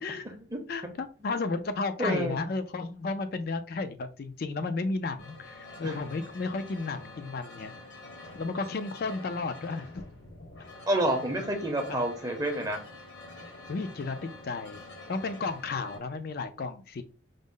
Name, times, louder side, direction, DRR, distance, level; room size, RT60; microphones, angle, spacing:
voice 1, 0.7-7.7 8.3-10.0 11.9-12.0 13.7-14.2 14.4-14.8 15.1-17.0, left 3 dB, 50° left, 10 dB, 0.4 m, -33 dB
voice 2, 2.0-2.4 5.8-6.0 10.9-12.8, right 1 dB, 20° right, 3 dB, 0.6 m, -29 dB
sound 1, 5.2-16.0, left 2 dB, 75° left, 1.4 m, -47 dB
5.1 x 2.1 x 3.6 m, 0.36 s
head